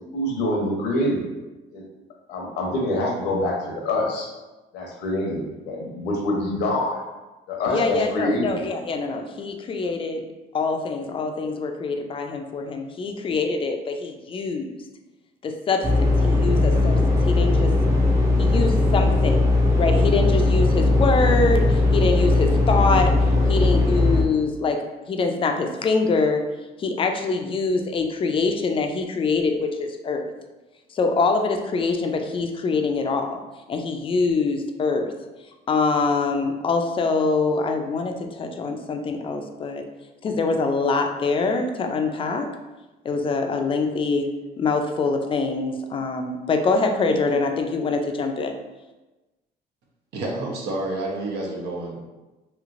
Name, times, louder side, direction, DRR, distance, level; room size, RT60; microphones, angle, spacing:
voice 1, 0.1-1.3 1.7-1.8 2.3-4.3 4.7-7.0 7.5-8.7, left 1 dB, 85° left, -1 dB, 0.8 m, -25 dB
voice 2, 7.7-10.2 10.5-14.8 15.4-17.7 18.4-23.1 23.5-24.8 25.1-26.4 26.8-30.3 30.9-33.4 33.7-35.1 35.7-39.8 40.2-42.5 43.0-44.3 44.6-48.5, left 4 dB, 30° left, 4 dB, 0.4 m, -24 dB
sound 1, 15.8-24.2, left 2 dB, 15° right, 0.6 m, -19 dB
voice 3, 50.1-52.1, right 2 dB, 80° right, -2 dB, 0.8 m, -29 dB
3.1 x 2.8 x 2.5 m, 1.1 s
cardioid pair, 110°, 17 cm